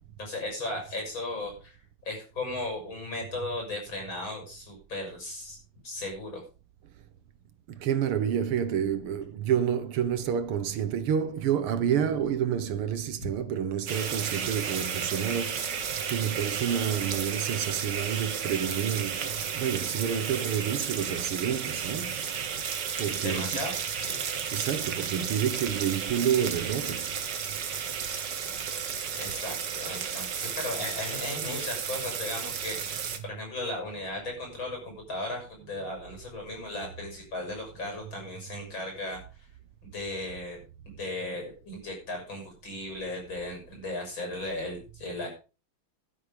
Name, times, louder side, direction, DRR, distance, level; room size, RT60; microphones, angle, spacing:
voice 1, 0.2-1.8 2.1-5.6 5.8-6.4 23.2-23.7 24.0-24.2 29.1-32.8 33.2-39.2 39.8-40.6 40.9-45.3, left 2 dB, 60° left, 7.6 m, -36 dB
voice 2, 7.7-15.8 16.1-22.3 23.0-23.7 24.5-27.1, right 9 dB, 85° right, 2.1 m, -29 dB
sound 1, 13.9-33.2, right 7 dB, 55° right, 2.0 m, -33 dB
11.5 x 11.0 x 5.2 m
omnidirectional pair, 2.4 m